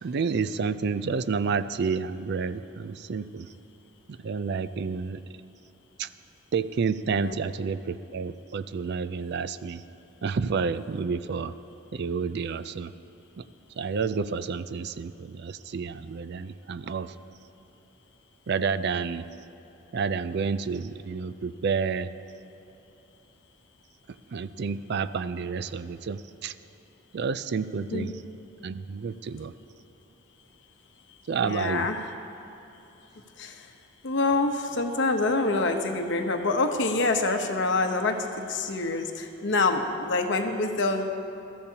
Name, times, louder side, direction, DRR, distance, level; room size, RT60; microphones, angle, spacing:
voice 1, 0.0-3.5 4.1-5.2 6.0-6.1 6.5-9.8 10.2-11.5 11.9-12.9 13.4-13.5 13.8-17.1 18.5-19.2 19.9-22.1 24.3-26.5 27.1-28.2 28.6-29.5 31.3-31.9, right 5 dB, 55° right, 13 dB, 0.4 m, -30 dB
voice 2, 31.4-32.0 33.4-33.7 34.0-41.1, left 3 dB, 60° left, 5 dB, 1.0 m, -26 dB
21.0 x 13.5 x 2.9 m, 2.8 s
head